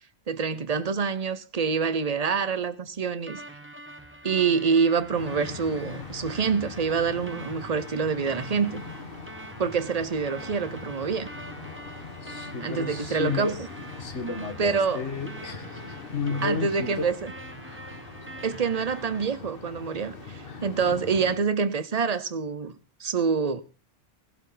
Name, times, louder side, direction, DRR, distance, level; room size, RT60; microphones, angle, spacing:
voice 1, 0.3-3.4 4.2-8.8 9.6-11.3 12.6-13.5 14.6-15.0 16.4-17.3 18.4-23.6, right 5 dB, 35° right, 1.0 m, -26 dB
sound 1, 3.3-19.2, right 2 dB, 10° right, 1.3 m, -45 dB
sound 2, 5.1-21.4, left 4 dB, 50° left, 1.9 m, -41 dB
voice 2, 12.2-13.6 14.0-17.1 17.6-18.0 20.5-20.7, left 4 dB, 80° left, 1.9 m, -32 dB
19.0 x 11.5 x 4.0 m
omnidirectional pair, 1.2 m